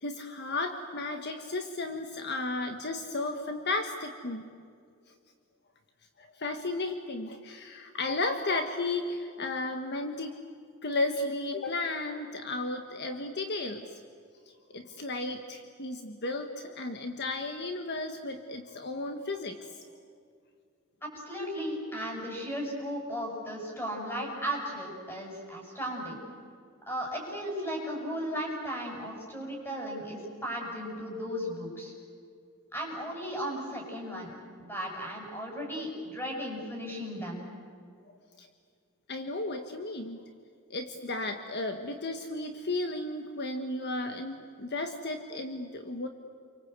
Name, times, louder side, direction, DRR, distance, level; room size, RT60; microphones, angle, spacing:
voice 1, 0.0-4.5 6.2-10.4 10.8-14.0 14.7-19.8 38.4-38.5 39.1-40.2 40.7-46.1, left 2 dB, 55° left, 6 dB, 1.4 m, -34 dB
voice 2, 21.0-26.2 26.9-31.9 32.7-34.3 34.6-37.5, equal, 10° left, -1 dB, 7.5 m, -36 dB
29.5 x 24.0 x 8.2 m, 2.3 s
head